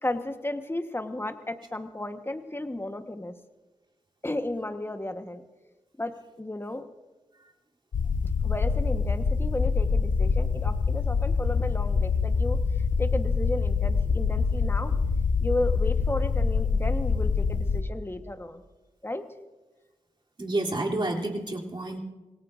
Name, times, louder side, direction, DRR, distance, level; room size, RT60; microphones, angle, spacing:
voice 1, 0.0-3.3 4.2-5.4 6.0-6.8 8.4-12.6 13.0-14.9 15.4-18.6 19.0-19.3, left 1 dB, 15° left, 8 dB, 1.2 m, -33 dB
sound 1, 7.9-17.8, left 5 dB, 80° left, 0.9 m, -25 dB
voice 2, 20.4-22.0, right 2 dB, 40° right, -2 dB, 3.1 m, -29 dB
25.5 x 17.5 x 2.6 m, 1.2 s
cardioid pair, 40°, 13 cm